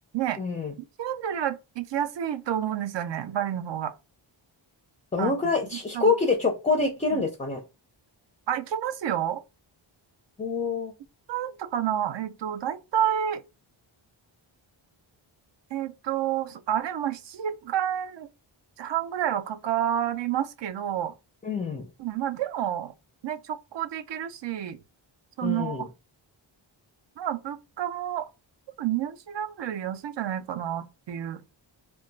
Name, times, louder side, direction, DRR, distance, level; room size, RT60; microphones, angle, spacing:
voice 1, 0.4-0.7 5.1-7.6 10.4-10.9 21.4-21.9 25.4-25.9, left 4 dB, 15° left, 0.4 m, -26 dB
voice 2, 1.0-3.9 5.2-5.3 5.9-6.1 7.1-7.2 8.5-9.4 11.3-13.4 15.7-18.3 18.8-21.1 22.0-22.9 23.2-24.8 25.4-25.9 27.2-28.3 28.8-31.4, right 10 dB, 65° right, 0.5 m, -29 dB
2.2 x 2.2 x 3.8 m
wide cardioid pair, 130°, 48 cm